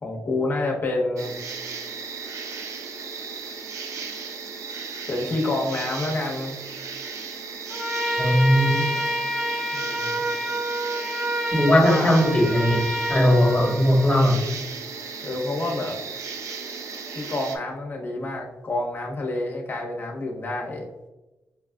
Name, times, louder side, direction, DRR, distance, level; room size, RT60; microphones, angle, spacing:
voice 1, 0.0-1.3 5.1-6.6 9.7-10.2 11.7-12.2 15.2-16.0 17.1-20.8, left 2 dB, 40° left, 0 dB, 1.0 m, -28 dB
sound 1, 1.2-17.6, right 5 dB, 70° right, 0.5 m, -36 dB
Trumpet, 7.7-14.2, equal, 5° right, 0.9 m, -28 dB
voice 2, 8.2-8.9 11.5-12.8 13.1-14.4, equal, 20° left, -1 dB, 1.3 m, -19 dB
5.7 x 2.4 x 2.3 m, 1.0 s
cardioid pair, 105°, 5 cm